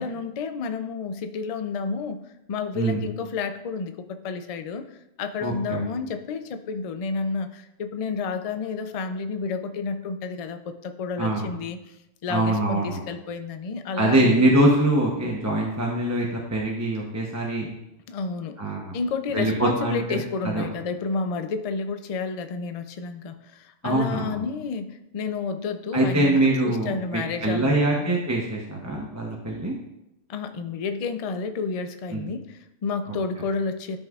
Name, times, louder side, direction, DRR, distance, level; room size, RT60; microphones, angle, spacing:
voice 1, 0.0-2.2 2.5-11.8 12.2-14.5 18.1-18.6 18.9-28.1 30.3-34.0, left 4 dB, 70° left, 9 dB, 0.3 m, -30 dB
voice 2, 5.4-5.9 11.2-11.5 12.3-13.0 14.0-17.7 18.6-18.9 19.3-20.2 20.4-20.7 23.8-24.4 25.9-29.7 32.1-32.2 33.1-33.2, right 1 dB, 15° right, -2 dB, 0.7 m, -23 dB
11.5 x 5.3 x 2.4 m, 0.87 s
omnidirectional pair, 1.3 m